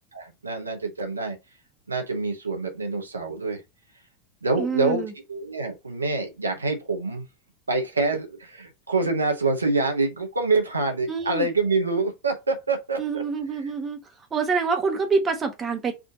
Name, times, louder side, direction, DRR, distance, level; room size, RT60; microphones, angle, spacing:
voice 1, 0.0-1.4 1.9-3.6 4.4-7.3 7.7-13.2, right 3 dB, 80° right, 0.8 m, -26 dB
voice 2, 4.6-5.1 11.1-11.5 13.0-14.0 14.3-15.9, right 4 dB, 25° right, 0.9 m, -26 dB
3.4 x 2.6 x 3.8 m
figure-of-eight pair, 85°, 0 cm